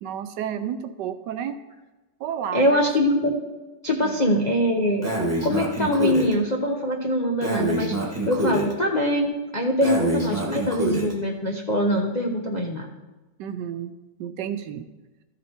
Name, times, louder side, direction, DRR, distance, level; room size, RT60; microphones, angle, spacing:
voice 1, 0.0-1.6 2.2-2.8 4.0-4.1 13.4-13.9 14.2-14.9, right 9 dB, 75° right, 10 dB, 1.2 m, -31 dB
voice 2, 2.5-3.3 3.8-5.0 5.4-7.9 8.3-12.9, equal, 50° left, -2 dB, 0.5 m, -23 dB
Breathing, 5.0-6.3 7.4-8.7 9.8-11.1, right 1 dB, 10° right, 1.5 m, -26 dB
13.5 x 5.1 x 4.3 m, 1.1 s
omnidirectional pair, 2.0 m